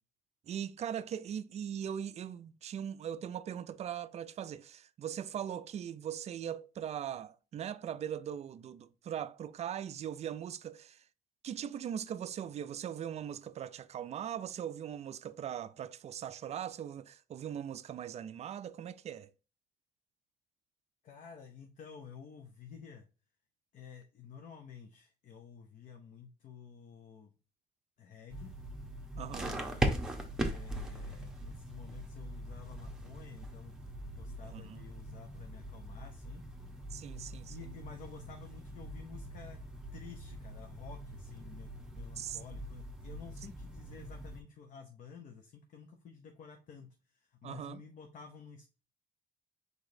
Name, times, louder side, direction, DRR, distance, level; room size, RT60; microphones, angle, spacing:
voice 1, 0.5-11.0 11.4-19.3 29.2-29.6 34.4-34.8 36.9-37.7 42.2-42.4 43.9-44.1 47.4-47.8, right 9 dB, 40° right, 0.4 m, -40 dB
voice 2, 21.0-23.0 23.7-27.3 28.0-28.5 29.7-29.9 30.4-33.7 34.2-36.4 37.1-37.2 37.5-39.6 39.9-48.7, left 6 dB, 50° left, 0.7 m, -52 dB
sound 1, 28.3-44.4, right 1 dB, 5° right, 0.9 m, -41 dB
4.9 x 4.0 x 2.6 m
cardioid pair, 110°, 17 cm